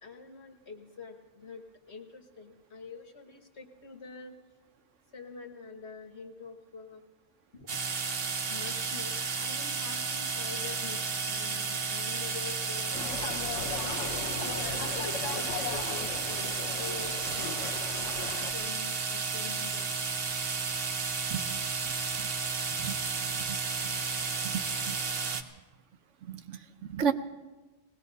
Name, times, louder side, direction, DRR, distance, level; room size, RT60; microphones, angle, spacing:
voice 1, 0.0-4.4 5.1-7.0 7.5-7.8 8.5-11.0 11.3-13.0 13.6-17.2 17.9-19.9, left 4 dB, 60° left, 3 dB, 1.7 m, -46 dB
sound 1, 7.7-25.4, right 5 dB, 50° right, 1.1 m, -32 dB
sound 2, 12.9-18.5, left 6 dB, 75° left, 1.2 m, -38 dB
voice 2, 23.2-23.6 24.2-25.0 26.3-27.1, right 7 dB, 75° right, 9 dB, 1.1 m, -34 dB
20.0 x 17.5 x 4.1 m, 1.2 s
omnidirectional pair, 1.3 m